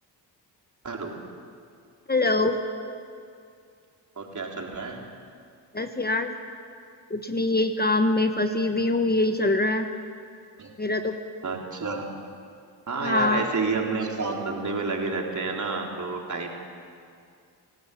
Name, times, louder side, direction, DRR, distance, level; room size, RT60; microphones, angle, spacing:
voice 1, 0.8-1.2 4.2-5.0 10.6-10.7 11.4-12.1 12.9-16.5, right 4 dB, 45° right, 0 dB, 4.2 m, -29 dB
voice 2, 2.1-2.6 5.7-6.3 7.1-9.9 10.8-11.2 13.0-13.5, left 2 dB, 20° left, 6 dB, 1.4 m, -24 dB
30.0 x 13.0 x 8.6 m, 2.3 s
cardioid pair, 70°, 43 cm